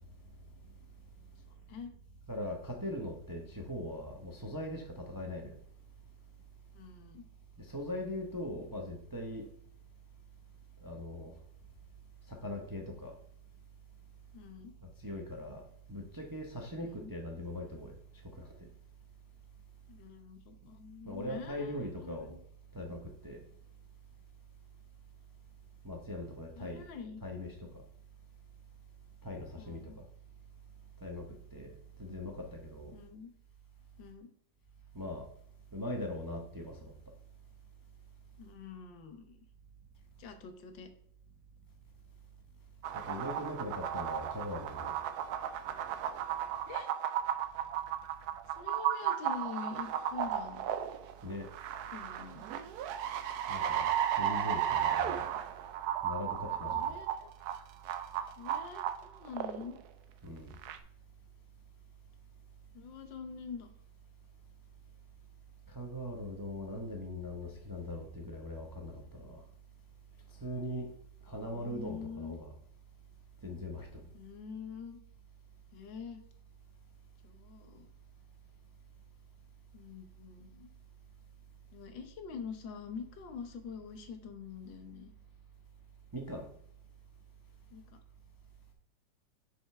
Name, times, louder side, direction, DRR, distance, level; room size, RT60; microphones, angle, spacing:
voice 1, 2.3-5.5 7.6-9.4 10.8-11.3 12.3-13.1 15.0-15.6 15.9-18.0 18.4-18.5 21.0-22.3 22.7-23.4 25.8-26.8 27.2-27.5 29.2-30.0 31.0-31.2 31.5-31.7 32.0-33.0 34.9-35.3 35.7-36.9 43.0-44.9 51.2-51.5 53.5-53.9 54.2-55.2 56.0-56.9 60.2-60.5 65.7-69.4 70.4-70.9 71.3-72.5 73.4-74.0 86.1-86.5, left 1 dB, 20° right, 2 dB, 0.6 m, -40 dB
voice 2, 6.7-7.2 14.3-14.7 16.8-17.1 19.9-22.4 26.6-27.2 29.6-30.0 32.0-32.3 32.9-33.3 34.0-34.3 38.4-39.5 40.2-40.9 46.7-46.9 48.5-50.6 51.9-52.4 56.7-57.3 58.4-59.8 62.7-63.7 71.4-72.4 74.1-75.0 75.7-76.2 77.2-77.9 79.7-80.7 81.7-85.1 87.7-88.0, left 6 dB, 80° left, 7 dB, 1.6 m, -45 dB
sound 1, 42.8-59.8 60.5-60.8, right 10 dB, 70° right, 1.0 m, -34 dB
6.4 x 4.8 x 4.5 m, 0.65 s
omnidirectional pair, 2.0 m